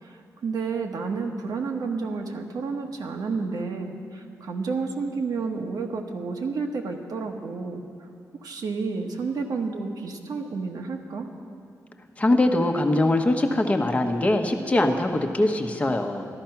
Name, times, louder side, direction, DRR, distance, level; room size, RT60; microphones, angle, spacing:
voice 1, 0.0-7.8 8.4-11.3, right 4 dB, 80° right, 2 dB, 1.2 m, -30 dB
voice 2, 12.2-16.3, left 1 dB, 20° left, 4 dB, 1.0 m, -22 dB
13.0 x 13.0 x 5.8 m, 2.4 s
wide cardioid pair, 125°, 6 cm